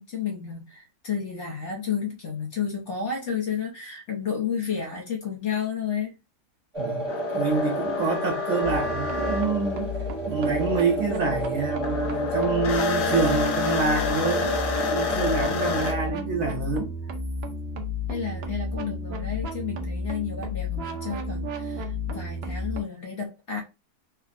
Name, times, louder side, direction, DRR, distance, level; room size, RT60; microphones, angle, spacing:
voice 1, 0.0-6.1 18.1-23.6, left 7 dB, 55° left, 0.9 m, -31 dB
sound 1, 6.7-16.1, right 1 dB, 35° right, 0.5 m, -31 dB
voice 2, 6.8-9.9 10.3-14.5 14.8-16.9, right 4 dB, 65° right, 1.1 m, -27 dB
sound 2, 7.1-11.5 11.8-15.9, left 6 dB, 75° left, 1.2 m, -30 dB
sound 3, 8.6-22.8, left 1 dB, 85° right, 0.5 m, -33 dB
3.5 x 2.0 x 2.4 m
omnidirectional pair, 1.7 m